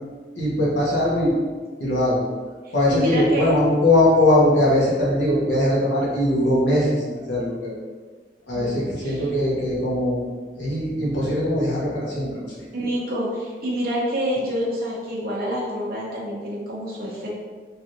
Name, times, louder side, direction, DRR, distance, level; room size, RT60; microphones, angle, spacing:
voice 1, 0.4-1.3 1.8-2.2 2.7-6.9 7.3-7.8 8.5-10.2 10.6-12.4, left 1 dB, 85° left, -6 dB, 1.0 m, -20 dB
voice 2, 2.6-3.5 8.5-9.2 12.7-17.3, equal, 55° right, -6 dB, 0.8 m, -27 dB
3.2 x 2.5 x 2.6 m, 1.5 s
head